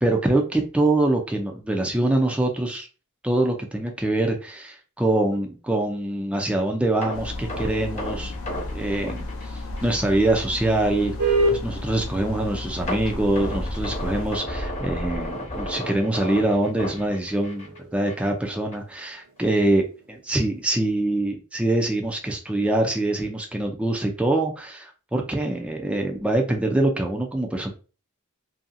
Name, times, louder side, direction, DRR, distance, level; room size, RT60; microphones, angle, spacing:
voice 1, 0.0-2.9 3.2-9.3 9.5-11.1 11.5-27.7, right 2 dB, 5° right, 2 dB, 0.4 m, -24 dB
sound 1, 7.0-10.1 10.4-10.5 11.0-11.1 12.9-17.8 18.1-18.3 18.7-18.8, left 1 dB, 30° left, 0.8 m, -32 dB
sound 2, 7.1-14.4, left 2 dB, 65° left, 0.6 m, -34 dB
sound 3, 11.2-21.0, right 2 dB, 70° right, 0.7 m, -32 dB
2.8 x 2.7 x 2.5 m, 0.33 s
head